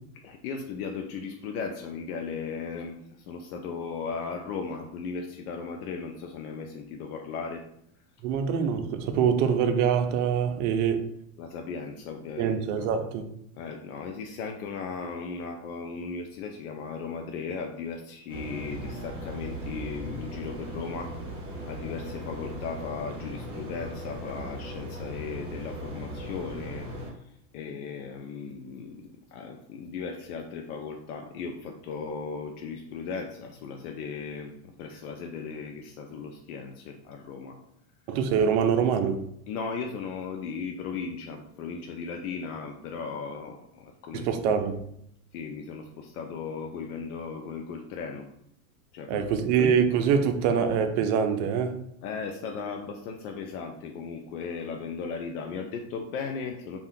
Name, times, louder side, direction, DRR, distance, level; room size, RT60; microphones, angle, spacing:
voice 1, 0.2-7.6 11.4-12.9 13.6-21.1 21.6-26.9 27.5-37.6 39.5-44.3 45.3-48.3 48.9-49.6 52.0-56.8, left 5 dB, 80° left, 0.5 m, -37 dB
voice 2, 8.2-11.1 12.4-13.3 38.1-39.2 44.1-44.8 49.1-51.8, right 7 dB, 60° right, 0.5 m, -24 dB
sound 1, 18.3-27.1, equal, 10° right, 1.0 m, -38 dB
2.6 x 2.4 x 3.5 m
supercardioid pair, 135°, 44 cm